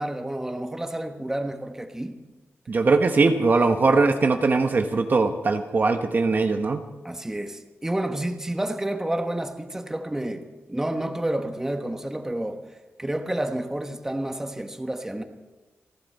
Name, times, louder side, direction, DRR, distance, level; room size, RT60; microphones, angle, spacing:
voice 1, 0.0-2.2 7.0-12.6 13.0-15.2, right 1 dB, 10° right, 1.2 m, -30 dB
voice 2, 2.7-6.8, right 3 dB, 45° right, 1.1 m, -21 dB
29.0 x 11.5 x 4.2 m
wide cardioid pair, 115°, 5 cm